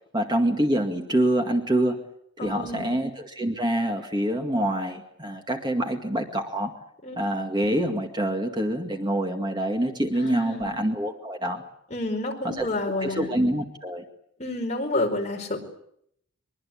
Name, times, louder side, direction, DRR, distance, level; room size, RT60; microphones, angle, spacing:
voice 1, 0.1-2.0 2.4-6.7 7.2-11.6 12.4-14.0, right 1 dB, 20° right, 3 dB, 2.1 m, -26 dB
voice 2, 2.4-2.9 7.0-7.2 10.2-10.7 11.9-13.3 14.4-15.6, left 2 dB, 30° left, 1 dB, 4.7 m, -29 dB
24.0 x 23.0 x 8.6 m, 0.71 s
head